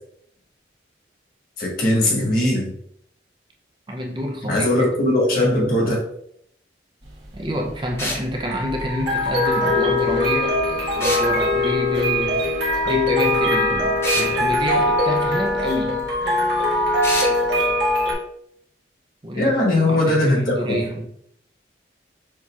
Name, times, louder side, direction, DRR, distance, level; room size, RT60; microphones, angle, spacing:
voice 1, 1.6-2.7 4.5-6.0 19.4-20.8, left 1 dB, 50° left, -3 dB, 1.4 m, -19 dB
voice 2, 3.9-4.7 7.3-16.1 19.2-19.6 19.9-21.1, equal, 25° right, 0 dB, 0.5 m, -28 dB
sound 1, 7.1-18.1, left 1 dB, 75° right, 1.2 m, -21 dB
sound 2, 8.0-8.3 11.0-11.3 14.0-14.3 17.0-17.3, left 1 dB, 15° left, 0.7 m, -26 dB
6.5 x 2.8 x 2.3 m, 0.70 s
head